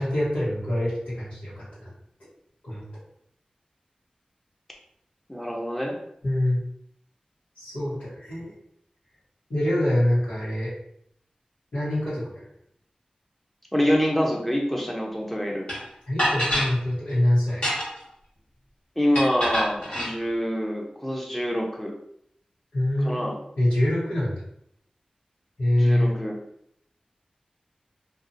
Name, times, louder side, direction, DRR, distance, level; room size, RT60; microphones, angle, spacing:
voice 1, 0.0-1.9 2.6-2.8 6.2-6.6 7.5-8.5 9.5-10.7 11.7-12.4 16.1-17.7 22.7-23.2 23.6-24.4 25.6-26.1, left 1 dB, 85° left, -12 dB, 1.3 m, -24 dB
voice 2, 5.3-6.0 13.7-15.7 19.0-21.9 23.0-23.4 25.8-26.4, equal, 10° left, -1 dB, 0.7 m, -26 dB
sound 1, 15.7-15.8 16.2-16.7 17.5-18.1 19.1-20.1, equal, 50° left, 1.4 m, -25 dB
2.6 x 2.5 x 2.6 m, 0.71 s
cardioid pair, 45°, 3 cm